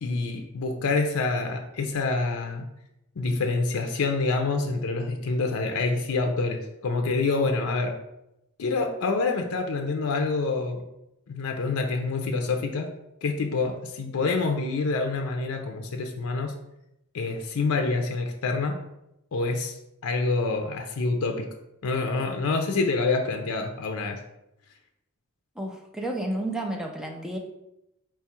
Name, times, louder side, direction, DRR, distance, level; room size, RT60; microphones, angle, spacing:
voice 1, 0.0-2.6 3.2-7.9 8.6-10.8 11.3-12.9 13.2-16.5 17.1-18.8 19.3-21.5 21.8-24.2, left 3 dB, 80° left, 4 dB, 0.5 m, -27 dB
voice 2, 25.6-27.4, right 1 dB, ahead, 1 dB, 0.4 m, -31 dB
4.4 x 2.4 x 4.2 m, 0.87 s
head